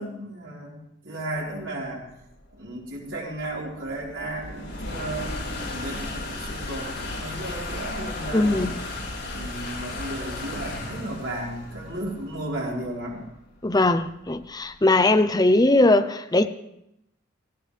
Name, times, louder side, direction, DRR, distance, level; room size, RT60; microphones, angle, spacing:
voice 1, 0.0-2.1 2.6-5.3 5.6-8.7 9.3-13.2, right 1 dB, 80° right, 4.5 m, -34 dB
sound 1, 1.7-15.0, left 2 dB, 65° left, 4.3 m, -35 dB
voice 2, 8.3-8.8 13.6-16.5, left 2 dB, 20° left, 0.7 m, -20 dB
18.0 x 17.0 x 3.4 m
head